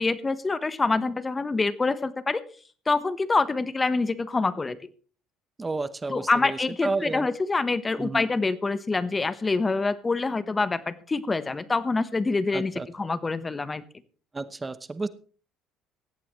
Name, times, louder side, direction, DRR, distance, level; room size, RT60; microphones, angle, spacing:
voice 1, 0.0-2.4 2.9-4.8 6.1-13.8, left 3 dB, 25° left, 15 dB, 1.1 m, -26 dB
voice 2, 5.6-7.3 8.0-8.2 12.5-12.9 14.3-15.1, right 3 dB, 20° right, 15 dB, 0.9 m, -31 dB
17.5 x 14.5 x 3.2 m, 0.40 s
supercardioid pair, 70°, 0 cm